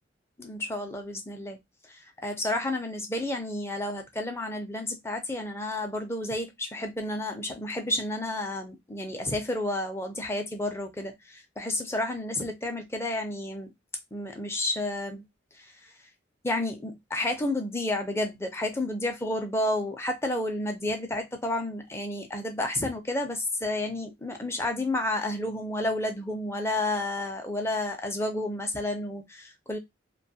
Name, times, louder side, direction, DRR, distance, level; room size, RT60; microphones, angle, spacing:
voice 1, 0.4-1.6 1.9-13.7 14.1-15.2 15.6-15.7 16.4-29.8, left 1 dB, 15° left, 0.5 m, -31 dB
2.5 x 2.3 x 2.7 m
head